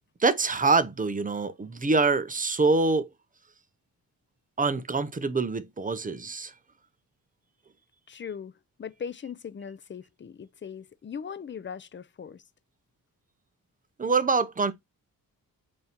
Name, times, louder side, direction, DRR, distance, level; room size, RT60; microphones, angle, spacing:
voice 1, 0.2-3.1 4.6-6.5 14.0-14.7, right 3 dB, 20° right, 0.7 m, -25 dB
voice 2, 8.1-8.5 8.8-12.4, left 7 dB, 30° left, 0.6 m, -39 dB
7.4 x 2.8 x 4.4 m
cardioid pair, 105°, 36 cm